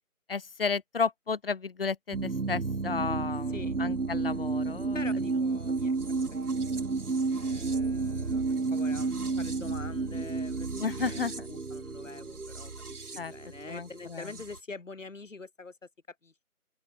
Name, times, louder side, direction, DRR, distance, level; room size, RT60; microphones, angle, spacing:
voice 1, 0.3-5.0 10.8-11.5 13.2-13.3 13.7-14.3, left 5 dB, 40° left, 2.9 m, -33 dB
sound 1, 2.1-14.6, right 4 dB, 80° right, 1.6 m, -31 dB
voice 2, 4.9-6.0 6.3-15.8 16.1-16.4, left 3 dB, 55° left, 7.0 m, -45 dB
open air
figure-of-eight pair, 155°, 45 cm